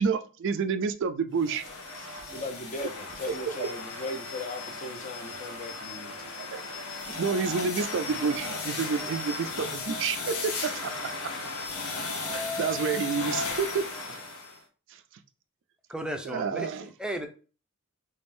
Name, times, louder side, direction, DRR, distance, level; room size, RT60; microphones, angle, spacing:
voice 1, 0.0-1.6 2.0-2.1 6.5-6.6 7.1-11.3 12.6-13.8 14.1-14.2 14.9-15.0 16.3-16.8, right 5 dB, 60° right, 0.4 m, -29 dB
sound 1, 1.4-14.6, left 3 dB, 75° left, 0.8 m, -35 dB
voice 2, 2.3-6.2, left 2 dB, 35° left, 0.7 m, -38 dB
voice 3, 15.9-17.3, right 1 dB, 5° right, 0.5 m, -35 dB
3.5 x 3.4 x 2.6 m
head